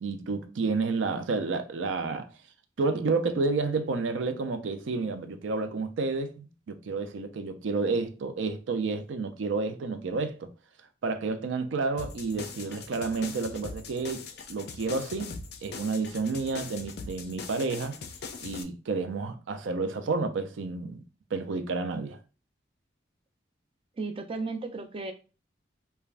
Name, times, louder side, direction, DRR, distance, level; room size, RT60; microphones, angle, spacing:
voice 1, 0.0-2.3 2.8-10.5 11.0-15.4 15.6-17.9 18.4-21.0 21.3-22.2, right 3 dB, 90° right, 0.4 m, -30 dB
sound 1, 12.0-18.6, left 4 dB, 55° left, 0.4 m, -41 dB
voice 2, 24.0-25.1, right 3 dB, 30° right, 0.4 m, -34 dB
3.2 x 2.2 x 2.4 m
head